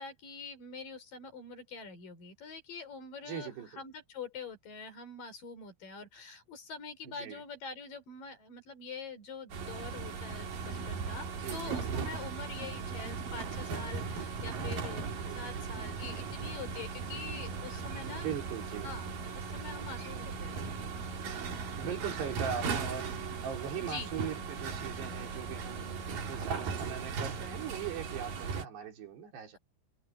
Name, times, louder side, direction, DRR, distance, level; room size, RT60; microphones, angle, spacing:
voice 1, 0.0-15.1 15.4-18.3 18.8-19.1 19.3-20.6 23.8-24.1, left 4 dB, 55° left, 6.2 m, -45 dB
voice 2, 3.2-3.7 7.0-7.4 11.4-12.1 18.1-18.9 21.8-29.6, right 8 dB, 85° right, 5.7 m, -40 dB
sound 1, 9.5-28.7, right 5 dB, 60° right, 4.4 m, -38 dB
omnidirectional pair, 4.7 m